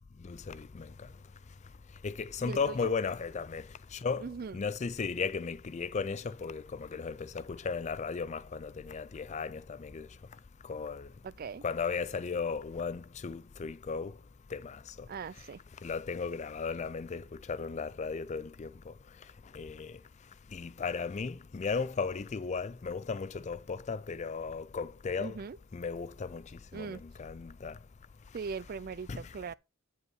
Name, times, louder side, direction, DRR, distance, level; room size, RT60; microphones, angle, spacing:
voice 1, 0.2-4.3 4.5-11.1 11.6-14.2 14.5-15.1 15.8-25.4 25.7-27.8 28.3-28.4 29.1-29.2, left 5 dB, 35° left, 0.4 m, -36 dB
voice 2, 2.4-2.9 4.2-4.6 11.2-11.6 15.1-15.6 25.2-25.6 26.7-27.0 28.3-29.5, right 5 dB, 45° right, 0.4 m, -40 dB
9.5 x 5.4 x 4.7 m
head